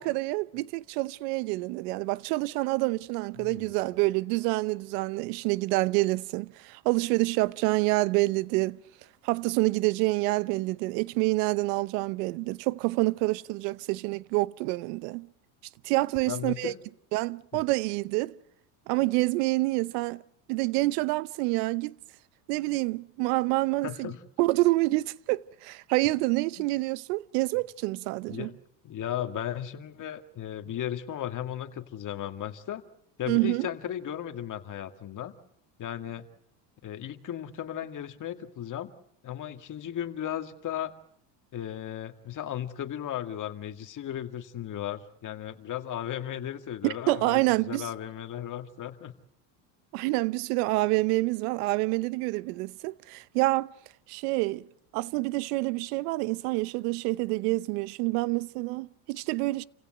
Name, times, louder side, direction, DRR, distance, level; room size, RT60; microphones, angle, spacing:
voice 1, 0.0-8.8 9.2-15.3 15.8-16.7 17.1-18.3 18.9-20.2 20.5-22.0 22.5-24.1 24.4-28.5 33.3-33.7 46.8-47.9 49.9-53.7 54.1-54.7 54.9-59.6, right 21 dB, 75° right, 0.9 m, -27 dB
voice 2, 3.4-3.7 16.3-16.8 17.5-17.6 23.8-24.2 26.6-26.7 28.3-28.6 28.8-32.8 33.2-35.3 35.8-36.2 36.8-38.9 39.2-40.9 41.5-47.4 47.7-49.1, left 10 dB, 40° left, 2.2 m, -35 dB
28.5 x 16.5 x 8.0 m
supercardioid pair, 110°, 47 cm